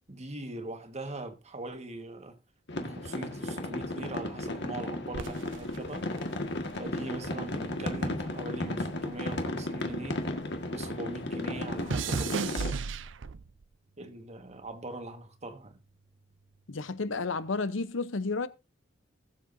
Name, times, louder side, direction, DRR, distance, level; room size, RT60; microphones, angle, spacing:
voice 1, 0.1-2.4 2.8-6.1 6.8-10.3 10.7-12.9 14.0-15.8, right 2 dB, 35° right, 1.5 m, -41 dB
sound 1, 2.7-12.7, left 1 dB, 65° left, 1.7 m, -34 dB
sound 2, 5.1-7.6 7.9-10.6 10.8-13.7 14.4-14.8, right 5 dB, 70° right, 0.5 m, -37 dB
voice 2, 16.7-18.5, left 3 dB, 85° left, 0.8 m, -31 dB
19.0 x 7.5 x 2.6 m
head